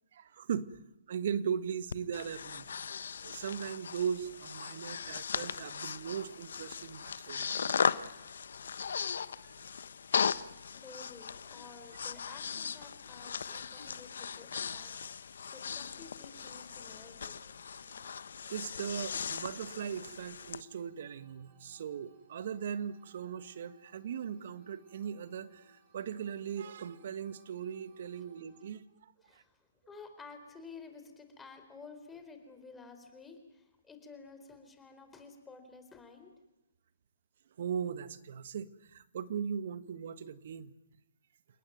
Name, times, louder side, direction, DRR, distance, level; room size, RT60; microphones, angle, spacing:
voice 1, 0.1-0.8 1.1-2.8 3.2-7.7 18.5-29.4 37.6-40.7, right 7 dB, 55° right, 13 dB, 1.6 m, -38 dB
Breathing, 1.9-20.6, left 6 dB, 65° left, 1.1 m, -38 dB
voice 2, 10.7-14.9 15.2-17.4 29.2-29.5 29.9-36.3, left 4 dB, 10° left, 6 dB, 4.2 m, -52 dB
sound 1, 16.1-28.7, right 5 dB, 35° right, 7.1 m, -66 dB
30.0 x 18.5 x 9.1 m, 0.91 s
figure-of-eight pair, 135°, 0 cm